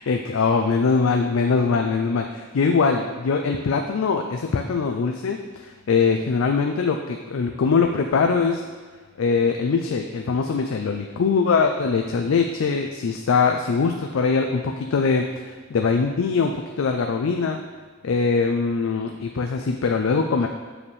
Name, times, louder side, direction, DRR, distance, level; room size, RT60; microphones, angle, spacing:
voice 1, 0.1-8.6 9.2-17.6 18.0-20.5, left 5 dB, 75° left, 4 dB, 0.4 m, -22 dB
7.1 x 4.9 x 3.2 m, 1.4 s
head